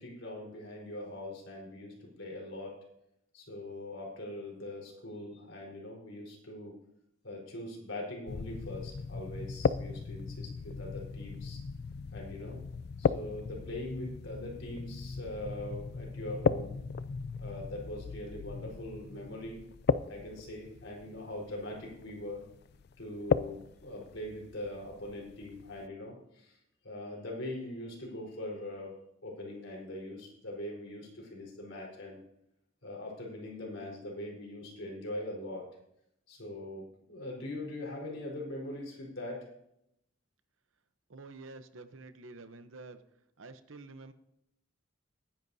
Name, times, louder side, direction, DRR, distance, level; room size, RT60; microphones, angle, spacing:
voice 1, 0.0-2.8 3.3-6.8 7.2-11.6 12.1-12.6 13.0-16.8 17.4-19.6 20.1-22.4 23.0-26.6 26.8-28.9 29.2-32.2 32.8-35.7 36.3-39.5, left 1 dB, 80° left, -1 dB, 4.4 m, -42 dB
sound 1, 8.3-25.9, left 5 dB, 55° left, 0.4 m, -36 dB
voice 2, 41.1-43.0 43.4-44.1, right 3 dB, 90° right, 10 dB, 0.9 m, -48 dB
20.0 x 10.5 x 2.8 m, 0.78 s
head